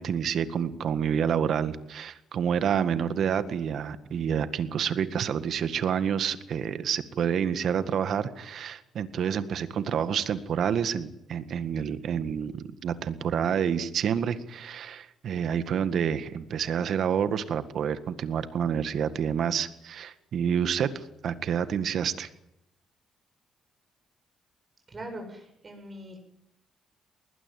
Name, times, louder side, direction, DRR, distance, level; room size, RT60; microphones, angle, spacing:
voice 1, 0.0-22.3, right 8 dB, 65° right, 11 dB, 1.8 m, -28 dB
voice 2, 24.9-26.2, right 1 dB, 30° right, 4 dB, 7.9 m, -41 dB
20.5 x 19.5 x 9.3 m, 0.79 s
cardioid pair, 90°, 0 cm